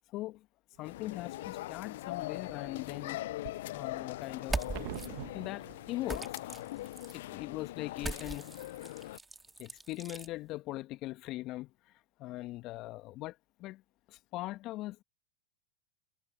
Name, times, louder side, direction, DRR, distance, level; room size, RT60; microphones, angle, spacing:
voice 1, 0.1-0.5 0.8-3.2 3.7-4.6 5.3-6.3 7.1-8.6 9.6-11.7 12.2-13.8 14.1-15.0, left 17 dB, 45° left, 1.4 m, -40 dB
sound 1, 0.8-9.2, left 16 dB, 65° left, 0.4 m, -41 dB
sound 2, 0.9-1.6 2.1-6.9, right 22 dB, 55° right, 1.7 m, -48 dB
sound 3, 4.4-5.1 6.1-7.2 8.0-10.3, right 3 dB, 10° right, 2.4 m, -40 dB
hypercardioid pair, 95°, 0 cm